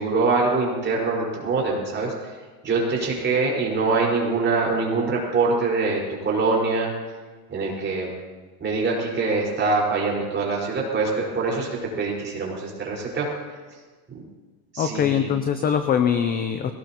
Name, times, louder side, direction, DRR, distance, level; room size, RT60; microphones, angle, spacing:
voice 1, 0.0-2.3 2.6-6.9 7.5-8.1 8.6-11.7 12.0-13.3 14.7-15.3, right 3 dB, 20° right, -3 dB, 5.0 m, -24 dB
voice 2, 14.8-16.7, left 8 dB, 20° left, 8 dB, 0.5 m, -22 dB
21.5 x 18.5 x 3.0 m, 1.4 s
supercardioid pair, 145°, 49 cm